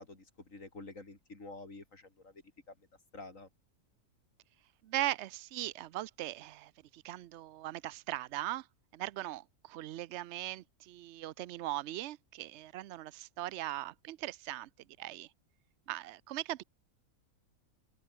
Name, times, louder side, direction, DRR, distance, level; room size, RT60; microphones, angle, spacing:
voice 1, 0.0-2.9 3.1-3.5, left 3 dB, 55° left, 4.0 m, -49 dB
voice 2, 4.8-8.7 8.9-14.7 15.0-15.3 15.9-16.6, right 15 dB, 65° right, 0.7 m, -39 dB
omnidirectional pair, 1.6 m